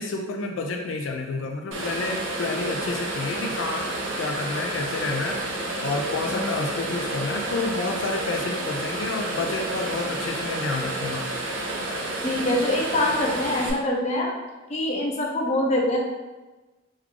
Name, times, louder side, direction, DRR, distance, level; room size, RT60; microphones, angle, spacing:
voice 1, 0.0-3.9 4.2-5.4 5.8-11.2, left 3 dB, 85° left, 2 dB, 0.4 m, -29 dB
sound 1, 1.7-13.7, right 2 dB, 85° right, 0.7 m, -30 dB
voice 2, 6.2-6.6 12.2-14.3 14.7-16.0, left 1 dB, 35° left, -1 dB, 0.6 m, -24 dB
3.1 x 2.4 x 3.6 m, 1.2 s
head